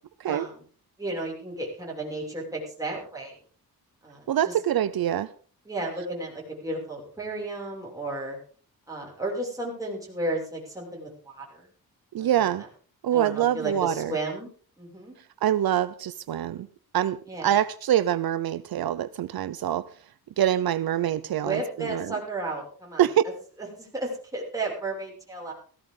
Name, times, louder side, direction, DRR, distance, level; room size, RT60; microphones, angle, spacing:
voice 1, 0.3-0.6 1.0-3.4 4.0-4.5 5.6-8.4 8.9-11.7 12.2-12.3 13.1-14.5 14.8-15.1 17.3-17.5 21.1-23.0 23.6-25.5, right 2 dB, 10° right, -3 dB, 6.5 m, -33 dB
voice 2, 4.3-5.3 12.1-12.6 13.0-14.2 15.4-16.7 16.9-19.9 20.4-22.1 23.0-23.2, right 11 dB, 70° right, 14 dB, 0.7 m, -25 dB
17.0 x 16.0 x 3.9 m, 0.42 s
wide cardioid pair, 155°, 38 cm